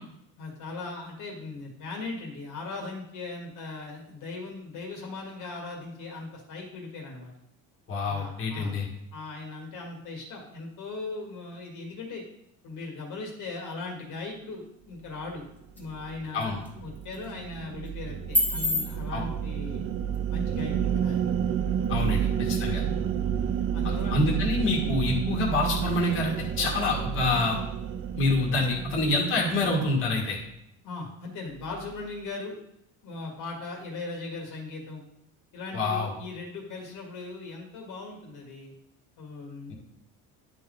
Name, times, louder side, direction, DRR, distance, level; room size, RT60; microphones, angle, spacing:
voice 1, 0.4-7.3 8.1-8.8 9.1-12.2 12.6-15.4 15.8-19.8 20.3-21.2 21.9-22.3 23.7-24.2 30.8-32.5 33.0-35.0 35.5-38.7 39.2-39.7, left 3 dB, 60° left, -1 dB, 1.8 m, -39 dB
voice 2, 7.9-8.9 16.3-16.6 19.1-19.2 21.9-22.8 24.1-27.6 28.1-30.4 35.7-36.1, left 2 dB, 35° left, -3 dB, 1.8 m, -26 dB
sound 1, 14.9-28.9, left 1 dB, 5° left, 1.9 m, -38 dB
sound 2, 15.9-30.4, right 8 dB, 40° right, 0.5 m, -30 dB
10.5 x 3.7 x 3.9 m, 0.77 s
cardioid pair, 135°, 34 cm